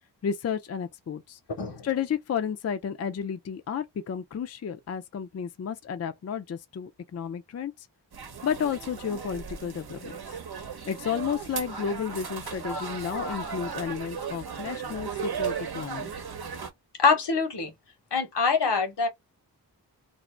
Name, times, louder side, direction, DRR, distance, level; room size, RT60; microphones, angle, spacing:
voice 1, 0.2-1.4 1.8-7.9 8.4-10.4 10.8-16.1, left 7 dB, 40° left, 0.4 m, -32 dB
sound 1, 8.1-16.7, right 6 dB, 65° right, 0.9 m, -36 dB
voice 2, 17.0-17.7 18.1-19.1, left 5 dB, 75° left, 1.1 m, -24 dB
2.5 x 2.0 x 3.1 m
cardioid pair, 45°, 41 cm